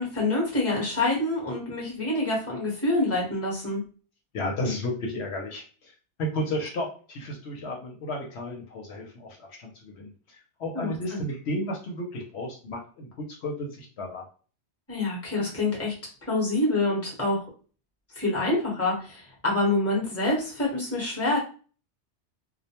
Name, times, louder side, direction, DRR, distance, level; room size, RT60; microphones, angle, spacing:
voice 1, 0.0-3.8 10.7-11.3 14.9-15.9 16.3-17.4 18.2-21.4, left 2 dB, 15° left, -4 dB, 0.9 m, -26 dB
voice 2, 4.3-5.9 6.2-14.3, left 1 dB, 70° left, 0 dB, 0.9 m, -33 dB
2.3 x 2.1 x 2.8 m, 0.39 s
omnidirectional pair, 1.2 m